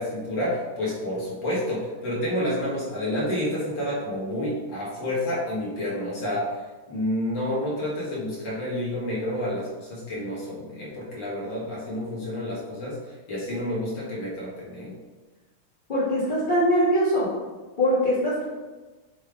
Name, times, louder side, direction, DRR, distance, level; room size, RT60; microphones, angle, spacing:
voice 1, 0.0-6.6 6.9-15.0, left 1 dB, 60° left, -6 dB, 2.7 m, -29 dB
voice 2, 15.9-17.3 17.8-18.4, equal, 25° left, -9 dB, 1.3 m, -22 dB
8.9 x 3.3 x 3.6 m, 1.2 s
omnidirectional pair, 2.3 m